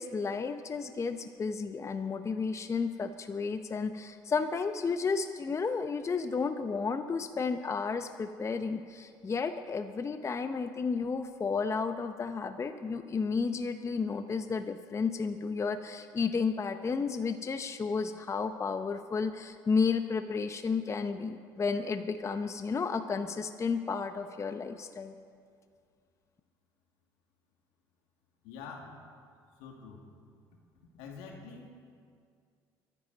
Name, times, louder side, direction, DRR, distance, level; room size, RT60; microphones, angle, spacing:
voice 1, 0.0-25.1, left 5 dB, 30° left, 9 dB, 0.7 m, -32 dB
voice 2, 28.4-29.0 29.6-30.0 30.9-31.7, left 5 dB, 75° left, 1 dB, 2.2 m, -46 dB
23.5 x 10.0 x 4.0 m, 2.2 s
hypercardioid pair, 70°, 10 cm